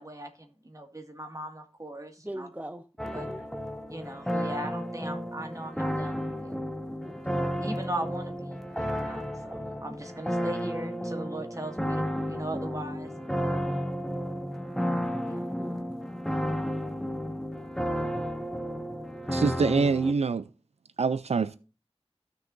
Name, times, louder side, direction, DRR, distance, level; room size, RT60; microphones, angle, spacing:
voice 1, 0.0-2.5 3.1-3.3 3.9-6.6 7.6-13.3 15.2-15.4, right 1 dB, 30° right, 2.0 m, -39 dB
voice 2, 2.2-3.5 7.0-7.4 15.3-15.8, right 1 dB, 15° right, 0.7 m, -41 dB
sound 1, 3.0-20.1, equal, 5° left, 1.2 m, -32 dB
voice 3, 19.3-20.5 21.0-21.6, right 4 dB, 75° right, 0.4 m, -25 dB
15.0 x 6.6 x 2.6 m
wide cardioid pair, 60°, 11 cm